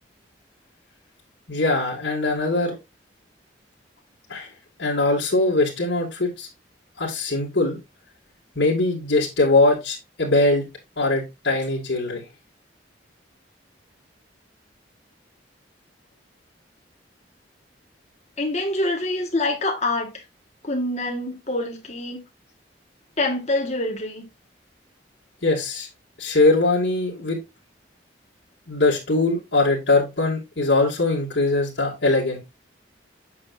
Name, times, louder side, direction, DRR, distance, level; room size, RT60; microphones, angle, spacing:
voice 1, 1.5-2.8 4.3-4.5 4.8-6.5 7.0-7.8 8.6-10.6 11.0-12.2 25.4-25.9 26.2-27.4 28.7-32.4, left 2 dB, 70° left, 2.6 m, -21 dB
voice 2, 18.4-20.2 20.6-22.2 23.2-24.2, left 2 dB, 35° left, 1.9 m, -25 dB
8.5 x 6.4 x 2.7 m
head